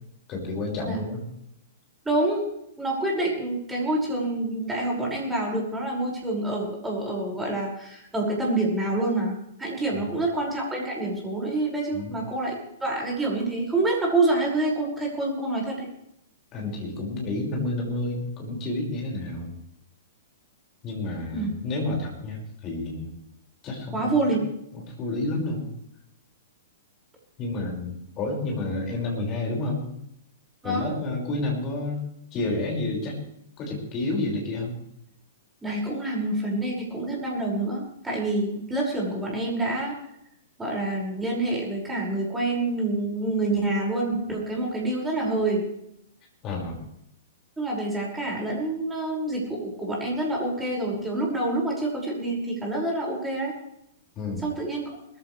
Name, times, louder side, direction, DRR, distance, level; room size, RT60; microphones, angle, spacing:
voice 1, 0.3-1.2 9.9-10.1 11.9-12.2 16.5-19.5 20.8-23.1 23.6-24.1 24.7-25.7 27.4-29.8 30.6-32.0 32.3-33.2 33.6-34.8 46.4-46.8 54.2-54.4, left 2 dB, 25° left, -1 dB, 5.6 m, -30 dB
voice 2, 2.0-2.4 2.8-15.9 21.3-21.5 23.9-24.4 30.6-30.9 35.6-40.0 40.6-45.6 47.6-53.5 54.4-54.9, right 2 dB, 10° right, -3 dB, 5.8 m, -27 dB
21.5 x 14.5 x 3.4 m, 0.77 s
figure-of-eight pair, 110°, 0 cm